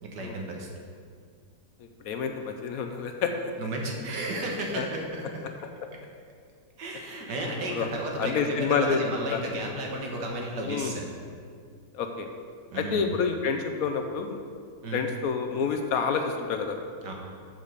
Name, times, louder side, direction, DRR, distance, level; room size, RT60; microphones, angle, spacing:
voice 1, 0.0-0.7 3.6-5.4 6.8-11.1 12.7-13.1 14.8-15.0 17.0-17.1, right 1 dB, 90° right, 0 dB, 1.9 m, -33 dB
voice 2, 2.0-3.3 4.7-4.8 7.7-7.9 8.2-9.0 9.3-9.4 10.7-10.9 11.9-12.3 12.7-14.4 14.9-16.7, left 6 dB, 70° left, 5 dB, 1.0 m, -28 dB
7.3 x 5.2 x 6.6 m, 2.1 s
omnidirectional pair, 1.8 m